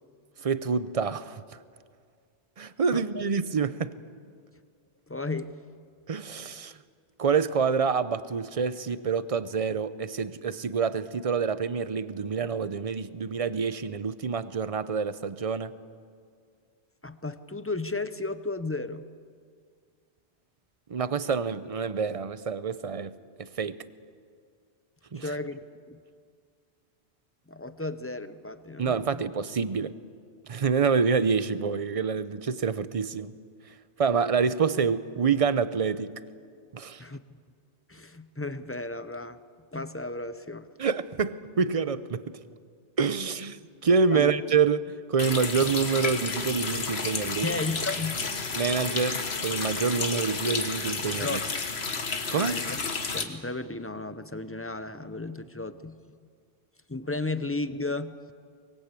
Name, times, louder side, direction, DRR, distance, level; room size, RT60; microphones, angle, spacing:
voice 1, 0.4-1.4 2.6-4.0 6.1-6.7 7.2-15.7 20.9-23.8 25.1-25.3 28.8-30.0 30.5-33.3 34.0-36.1 36.7-37.0 40.8-42.4 43.0-47.5 48.5-51.4 52.3-52.6, right 5 dB, 35° right, 0.7 m, -27 dB
voice 2, 2.9-3.2 5.1-5.6 17.0-19.1 25.1-25.6 25.9-26.0 27.5-29.2 37.0-37.2 37.9-39.4 39.7-40.7 44.1-44.3 47.4-48.3 51.2-51.5 52.4-52.8 53.1-56.0 56.9-58.3, left 2 dB, 15° left, 0.6 m, -34 dB
Water tap faucet, 45.2-53.2, left 4 dB, 65° left, 1.6 m, -31 dB
23.5 x 20.5 x 8.3 m
omnidirectional pair, 1.1 m